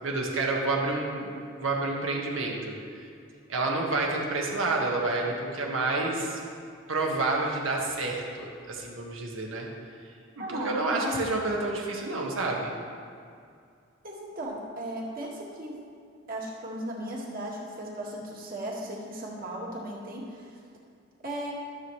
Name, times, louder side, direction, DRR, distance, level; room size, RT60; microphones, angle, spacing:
voice 1, 0.0-2.7 3.5-6.4 6.9-9.7 10.4-12.7, right 2 dB, 85° right, -1 dB, 1.5 m, -29 dB
voice 2, 10.4-11.2 14.0-15.7 16.3-20.6 21.2-21.5, right 1 dB, 45° right, -3 dB, 1.8 m, -36 dB
14.0 x 7.1 x 3.2 m, 2.3 s
head